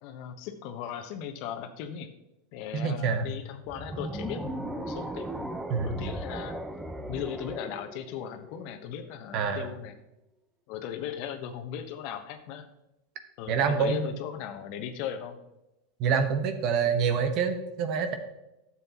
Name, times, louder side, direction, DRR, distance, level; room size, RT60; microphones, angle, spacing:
voice 1, 0.0-2.1 2.5-5.5 5.8-6.6 7.1-9.9 10.7-12.7 13.4-15.4, left 9 dB, 60° left, 7 dB, 1.1 m, -37 dB
voice 2, 2.7-3.3 5.7-6.1 9.3-9.7 13.5-14.1 16.0-18.1, right 6 dB, 50° right, 7 dB, 1.2 m, -26 dB
sound 1, 3.7-8.9, right 1 dB, 10° right, 0.9 m, -37 dB
12.5 x 7.6 x 3.0 m, 0.91 s
hypercardioid pair, 90°, 0 cm